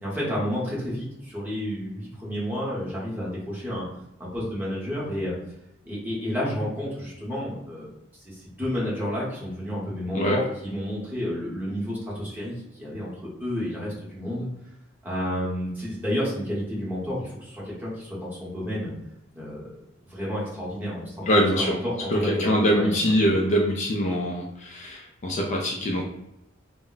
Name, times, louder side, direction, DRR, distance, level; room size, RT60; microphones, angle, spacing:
voice 1, 0.0-3.8 4.2-5.3 5.8-7.9 8.2-14.5 15.0-18.9 19.3-19.7 20.0-23.2, equal, 10° right, -7 dB, 0.9 m, -31 dB
voice 2, 21.3-21.8 22.1-26.0, equal, 35° left, -1 dB, 0.3 m, -23 dB
2.1 x 2.1 x 3.8 m, 0.86 s
head